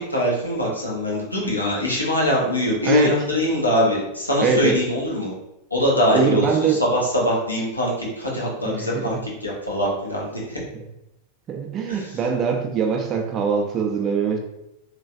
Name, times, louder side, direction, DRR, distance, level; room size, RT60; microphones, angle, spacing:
voice 1, 0.0-5.3 5.7-10.6 11.9-12.1, left 1 dB, 85° left, -4 dB, 0.9 m, -23 dB
voice 2, 2.8-3.2 4.4-4.8 6.1-6.8 8.7-9.2 11.5-14.4, right 6 dB, 30° right, 2 dB, 0.6 m, -22 dB
3.1 x 3.1 x 2.6 m, 0.85 s
figure-of-eight pair, 90°, 0 cm